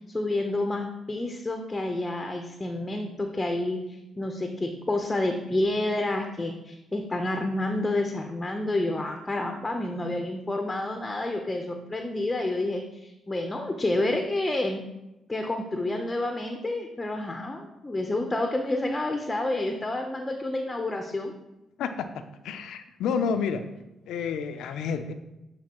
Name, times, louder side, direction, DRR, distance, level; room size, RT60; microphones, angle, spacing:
voice 1, 0.1-14.8 15.3-21.3, left 2 dB, 20° left, 4 dB, 0.7 m, -29 dB
voice 2, 22.4-23.6 24.1-25.1, left 6 dB, 80° left, 8 dB, 0.4 m, -29 dB
9.5 x 3.9 x 2.9 m, 0.95 s
cardioid pair, 70°, 0 cm